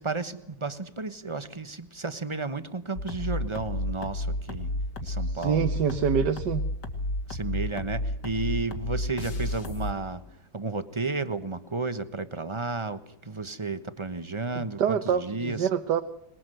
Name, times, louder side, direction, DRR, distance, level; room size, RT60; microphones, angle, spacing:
voice 1, 0.0-4.7 5.0-5.7 7.3-15.7, right 3 dB, 20° right, 11 dB, 0.9 m, -33 dB
sound 1, 3.0-9.9, left 1 dB, 70° left, 2.9 m, -31 dB
voice 2, 5.3-6.6 14.8-16.0, right 7 dB, 70° right, 9 dB, 1.6 m, -26 dB
23.0 x 21.0 x 7.9 m, 0.76 s
omnidirectional pair, 1.9 m